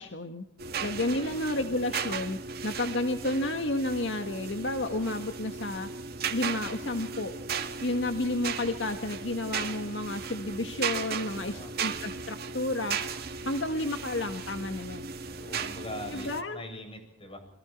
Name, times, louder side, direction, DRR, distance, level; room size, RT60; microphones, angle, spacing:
voice 1, 0.0-0.4 0.8-2.4 2.6-5.9 6.3-7.3 7.8-15.2 16.1-16.6, left 2 dB, 75° left, 6 dB, 1.8 m, -31 dB
voice 2, 0.6-1.0 1.3-1.8 11.3-11.7 15.2-17.4, left 1 dB, 30° left, 5 dB, 7.7 m, -43 dB
sound 1, 0.6-16.4, right 5 dB, 55° right, 2.1 m, -36 dB
28.0 x 23.0 x 4.6 m, 0.73 s
head